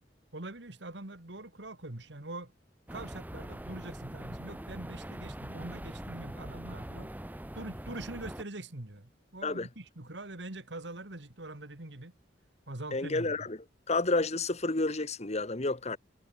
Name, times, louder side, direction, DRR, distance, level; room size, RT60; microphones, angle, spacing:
voice 1, 0.3-2.5 2.9-7.1 7.5-12.1 12.7-13.5, right 2 dB, 70° right, 2.4 m, -43 dB
sound 1, 2.9-8.4, right 1 dB, 10° right, 0.8 m, -42 dB
voice 2, 12.9-13.6 13.9-16.0, left 2 dB, 35° left, 1.5 m, -30 dB
head